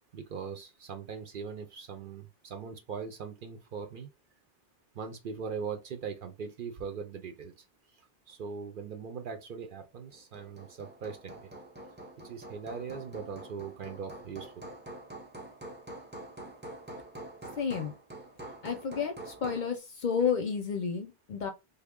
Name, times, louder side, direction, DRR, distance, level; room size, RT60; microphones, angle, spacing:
voice 1, 0.1-4.1 4.9-7.5 8.3-11.5 12.2-14.7, right 6 dB, 60° right, 0.7 m, -40 dB
Hammer, 10.1-19.8, right 1 dB, 15° right, 0.5 m, -46 dB
voice 2, 17.6-17.9 18.6-21.5, left 6 dB, 55° left, 0.6 m, -31 dB
3.3 x 2.1 x 3.5 m
omnidirectional pair, 1.1 m